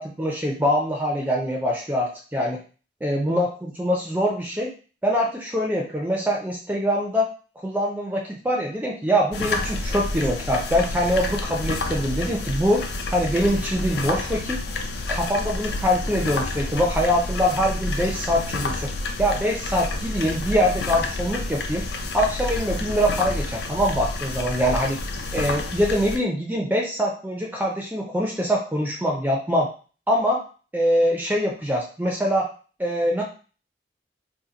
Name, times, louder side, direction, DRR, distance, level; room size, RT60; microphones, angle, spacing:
voice 1, 0.0-2.6 3.0-4.7 5.0-7.3 7.6-12.8 13.1-14.6 15.1-18.9 19.2-21.8 22.1-25.0 25.3-29.7 30.1-30.4 30.7-32.5 32.8-33.2, equal, 10° right, -1 dB, 0.4 m, -23 dB
sound 1, 9.3-26.2, left 2 dB, 60° left, 0.4 m, -29 dB
2.8 x 2.5 x 3.8 m, 0.37 s
head